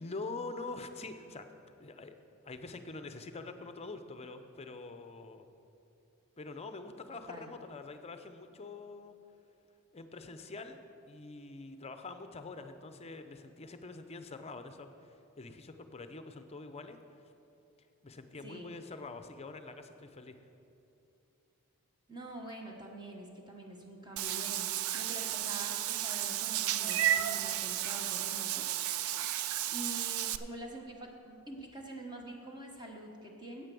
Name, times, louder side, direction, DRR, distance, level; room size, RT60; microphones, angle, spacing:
voice 1, 0.0-1.5 1.8-2.1 2.4-5.5 6.4-9.1 9.9-17.0 18.0-20.4, left 3 dB, 30° left, 8 dB, 0.6 m, -45 dB
voice 2, 7.1-7.5 18.4-18.8 22.1-28.7 29.7-33.7, right 1 dB, 20° right, 1 dB, 1.2 m, -46 dB
Meow / Water / Bathtub (filling or washing), 24.2-30.4, right 12 dB, 70° right, 0.4 m, -33 dB
9.4 x 8.3 x 6.9 m, 2.8 s
head